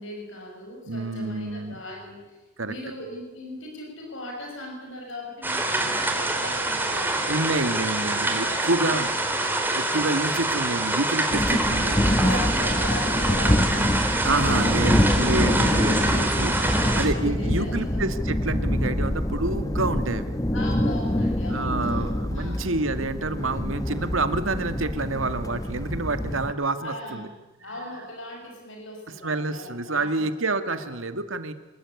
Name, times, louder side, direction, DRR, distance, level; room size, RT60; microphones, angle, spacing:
voice 1, 0.0-2.4 2.6-7.5 8.4-8.9 12.0-15.4 16.7-18.2 20.5-22.7 26.8-27.3 27.6-30.3 30.6-30.9, left 1 dB, 75° left, 2 dB, 6.4 m, -39 dB
voice 2, 0.9-1.8 2.6-2.7 7.3-9.1 9.7-12.2 14.2-16.6 16.9-20.4 21.5-27.3 29.2-31.5, right 2 dB, 85° right, 10 dB, 2.0 m, -28 dB
sound 1, 5.4-17.1, right 2 dB, 10° right, 3.4 m, -26 dB
sound 2, 11.3-26.5, left 1 dB, 15° left, 0.8 m, -25 dB
27.0 x 20.5 x 9.6 m, 1.1 s
head